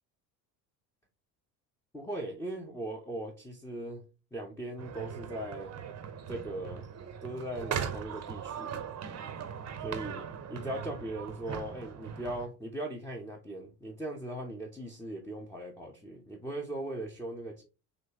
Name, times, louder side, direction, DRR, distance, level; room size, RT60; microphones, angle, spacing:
voice 1, 1.9-4.0 4.3-5.8 6.3-6.9 7.2-8.9 9.8-17.6, right 1 dB, 5° left, 0 dB, 0.9 m, -39 dB
sound 1, 4.8-12.5, right 7 dB, 30° right, 0.9 m, -39 dB
5.3 x 3.1 x 2.9 m, 0.30 s
hypercardioid pair, 65°, 50 cm